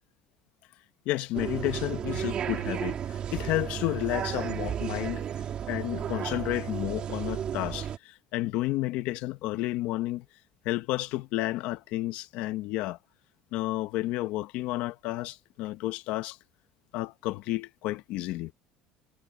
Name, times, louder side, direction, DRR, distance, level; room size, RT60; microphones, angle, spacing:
voice 1, 1.0-5.3 5.7-10.2 10.6-13.0 13.5-16.4 16.9-18.5, left 17 dB, 70° left, 1.5 m, -31 dB
sound 1, 1.3-8.0, right 9 dB, 45° right, 2.2 m, -33 dB
cardioid pair, 120°, 2 cm